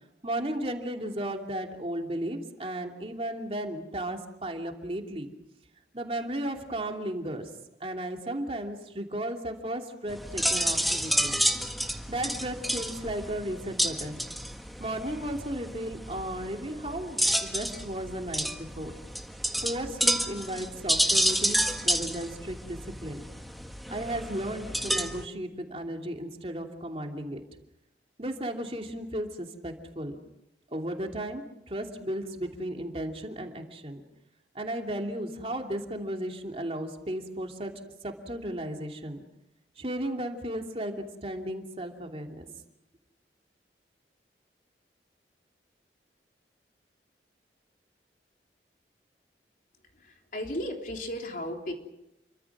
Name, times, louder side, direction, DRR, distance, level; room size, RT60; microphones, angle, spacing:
voice 1, 0.2-5.3 5.9-7.5 7.8-11.4 12.1-14.3 14.8-18.9 19.6-23.2 23.9-27.4 28.2-30.2 30.7-34.0 34.5-37.7 38.0-39.2 39.8-42.5, right 1 dB, 35° right, 2 dB, 2.9 m, -35 dB
sound 1, 10.1-25.2, equal, ahead, 1.7 m, -30 dB
voice 2, 49.9-51.7, equal, 50° left, 2 dB, 3.7 m, -35 dB
29.5 x 24.5 x 6.1 m, 0.86 s
head